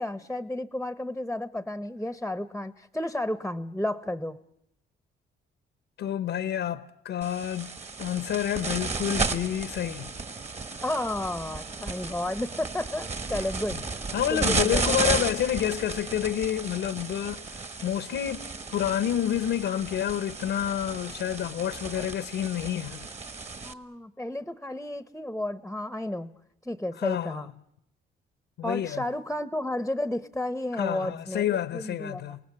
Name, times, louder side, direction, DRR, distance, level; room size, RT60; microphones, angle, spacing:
voice 1, 0.0-4.4 10.8-13.8 14.3-15.2 21.9-22.1 23.6-26.3 26.6-27.5 28.6-31.5 31.7-32.4, left 1 dB, 5° left, 0.8 m, -32 dB
voice 2, 6.0-7.7 8.0-10.1 14.1-23.1 27.0-27.5 28.6-29.0 30.8-32.4, left 10 dB, 75° left, 0.9 m, -29 dB
sound 1, 7.2-23.7, right 4 dB, 35° right, 1.6 m, -33 dB
28.0 x 18.5 x 8.5 m
cardioid pair, 90°, 20 cm